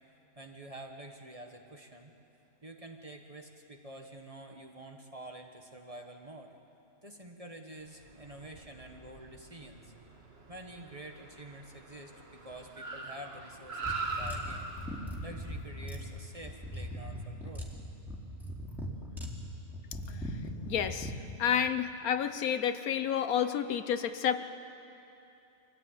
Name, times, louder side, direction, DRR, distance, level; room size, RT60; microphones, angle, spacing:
voice 1, 0.4-2.1 2.6-6.5 7.0-9.9 10.5-14.7 15.2-17.7, right 1 dB, 25° right, 3 dB, 1.3 m, -48 dB
Car, 7.9-17.5, right 3 dB, 40° right, 1.7 m, -43 dB
sound 1, 13.8-21.2, equal, ahead, 2.6 m, -40 dB
voice 2, 20.7-21.1 21.4-24.4, left 8 dB, 70° left, 10 dB, 1.2 m, -30 dB
24.0 x 15.0 x 9.1 m, 2.8 s
omnidirectional pair, 1.6 m